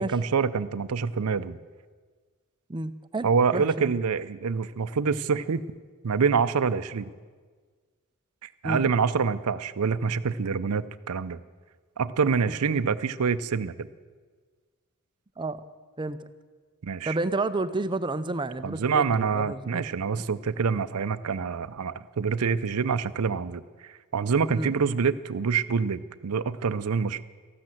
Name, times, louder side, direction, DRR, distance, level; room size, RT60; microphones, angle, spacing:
voice 1, 0.0-1.6 3.2-5.6 6.0-7.1 8.4-11.4 12.0-13.7 16.8-17.2 18.6-23.6 24.1-27.2, right 5 dB, 85° right, 14 dB, 0.6 m, -26 dB
voice 2, 2.7-3.9 8.6-8.9 12.5-12.6 15.4-15.6 16.0-16.2 17.1-19.8 20.1-20.2 24.5-24.8, right 2 dB, 20° right, 12 dB, 0.5 m, -30 dB
14.5 x 12.0 x 7.7 m, 1.5 s
head